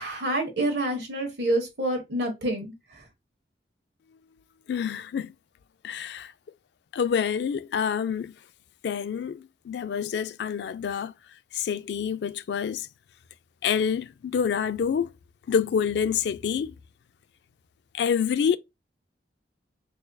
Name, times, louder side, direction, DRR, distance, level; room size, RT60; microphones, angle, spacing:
voice 1, 0.0-3.0, right 1 dB, 70° right, 1.3 m, -28 dB
voice 2, 4.7-5.3 5.8-6.3 6.9-8.3 8.8-11.1 11.5-12.9 13.6-15.1 15.5-16.8 17.9-18.6, left 7 dB, 70° left, 0.3 m, -27 dB
4.1 x 2.6 x 2.3 m
head